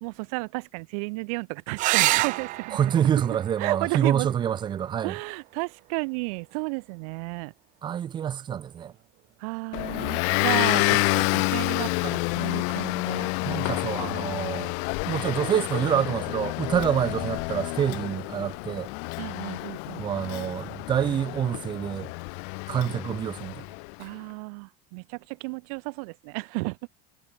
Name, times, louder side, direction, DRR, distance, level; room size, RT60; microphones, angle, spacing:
voice 1, 0.0-2.9 3.6-4.3 5.0-7.5 9.4-13.3 19.2-20.0 24.0-26.8, right 32 dB, 70° right, 0.9 m, -33 dB
sound 1, 1.8-6.8 8.7-9.3 12.8-12.9 13.2-13.3, right 19 dB, 40° right, 0.9 m, -30 dB
voice 2, 2.7-5.1 7.8-8.9 13.4-14.7 15.0-18.9 20.0-22.1 22.7-23.6, right 9 dB, 25° right, 1.2 m, -27 dB
Motor vehicle (road) / Engine, 9.7-23.9, left 40 dB or more, 60° left, 1.0 m, -29 dB
cardioid pair, 175°, 20 cm